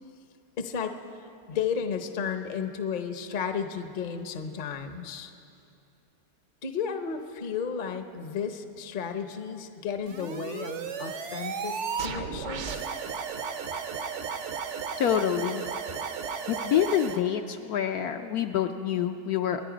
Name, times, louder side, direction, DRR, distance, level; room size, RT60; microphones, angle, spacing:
voice 1, 0.6-1.0 1.5-5.3 6.6-12.9, left 6 dB, 40° left, 7 dB, 0.7 m, -33 dB
sound 1, 10.1-17.2, right 6 dB, 55° right, 1.0 m, -34 dB
voice 2, 15.0-15.6 16.5-19.6, left 9 dB, 70° left, 6 dB, 1.0 m, -27 dB
28.0 x 10.0 x 5.1 m, 2.6 s
omnidirectional pair, 1.9 m